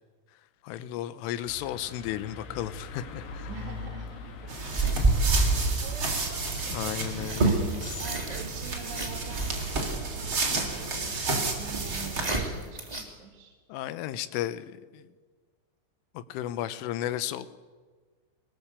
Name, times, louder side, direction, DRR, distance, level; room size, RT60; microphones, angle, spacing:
voice 1, 0.6-3.5 6.7-7.6 7.8-8.0 13.7-15.1 16.2-17.5, left 12 dB, 80° left, 13 dB, 3.5 m, -34 dB
sound 1, 1.5-10.9, left 3 dB, 60° left, 3.9 m, -44 dB
voice 2, 3.5-4.3 5.2-7.6 8.0-12.8 13.2-13.5, right 6 dB, 60° right, 3 dB, 4.1 m, -45 dB
sound 2, 4.5-12.4, right 3 dB, 30° right, 3.8 m, -31 dB
sound 3, 4.7-13.0, right 2 dB, 10° right, 2.3 m, -30 dB
24.0 x 20.0 x 8.3 m, 1.4 s
omnidirectional pair, 5.8 m